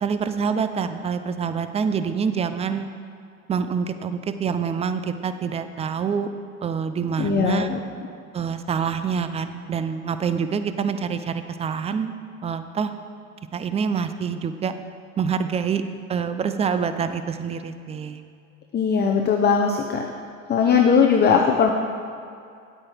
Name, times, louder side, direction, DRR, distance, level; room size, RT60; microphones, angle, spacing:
voice 1, 0.0-2.9 3.5-6.3 6.6-7.7 8.3-12.1 12.4-12.9 13.5-14.7 15.2-15.8 16.1-18.2, right 6 dB, 15° right, 10 dB, 0.4 m, -26 dB
voice 2, 7.2-7.8 18.7-20.1 20.5-21.7, left 6 dB, 25° left, 2 dB, 0.7 m, -19 dB
10.0 x 8.5 x 4.5 m, 2.4 s
hypercardioid pair, 95°, 43 cm